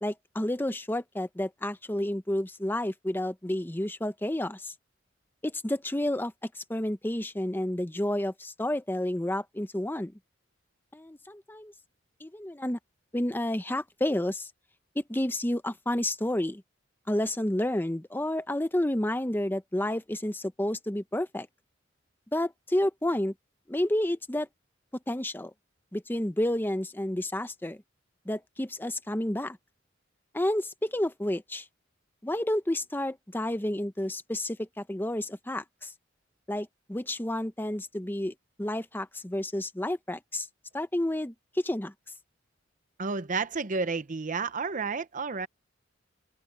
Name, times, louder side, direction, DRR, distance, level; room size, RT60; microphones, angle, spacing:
voice 1, 0.0-4.7 5.4-10.1 10.9-11.7 12.2-12.8 13.1-14.5 15.0-16.6 17.1-21.5 22.3-23.3 23.7-24.5 25.1-25.5 25.9-27.8 28.3-29.6 30.3-31.7 32.2-35.9 36.5-40.5 40.7-41.9, left 1 dB, 10° left, 0.8 m, -30 dB
voice 2, 43.0-45.5, right 4 dB, 45° right, 0.8 m, -31 dB
head